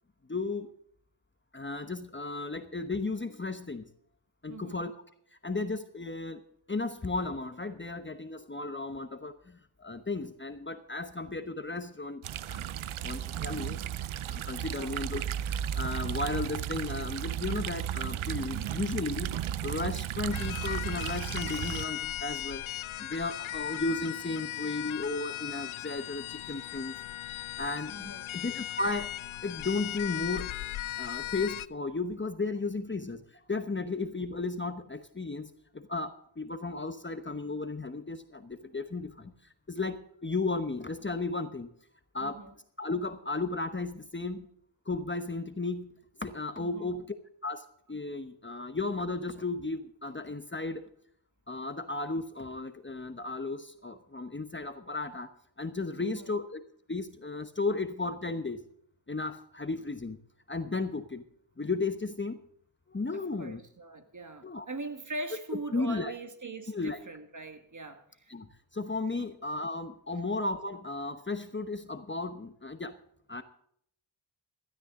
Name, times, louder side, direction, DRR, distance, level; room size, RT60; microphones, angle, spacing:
voice 1, 0.3-0.7 1.5-3.9 4.4-4.9 5.4-6.4 6.7-12.2 12.5-12.6 13.0-13.8 14.3-22.6 23.0-26.9 27.6-29.1 29.4-30.6 31.0-39.4 39.7-41.7 42.1-42.4 42.8-44.5 44.9-47.1 47.4-50.9 51.5-55.3 55.6-56.6 56.9-58.6 59.1-60.2 60.5-61.2 61.6-62.4 62.9-63.6 64.4-64.6 65.7-66.1 66.7-67.0 68.3-73.0 73.3-73.4, left 3 dB, 25° left, 1.0 m, -34 dB
voice 2, 4.5-4.8 13.3-13.7 14.7-15.0 27.9-28.3 42.2-42.5 46.6-47.0 56.0-56.3 63.1-68.3 69.2-69.3 70.1-70.3, right 2 dB, 40° right, 1.8 m, -42 dB
sound 1, 12.2-21.8, right 10 dB, 85° right, 0.6 m, -34 dB
sound 2, 20.3-31.7, left 14 dB, 85° left, 0.5 m, -38 dB
16.5 x 12.5 x 3.7 m
wide cardioid pair, 90°, 47 cm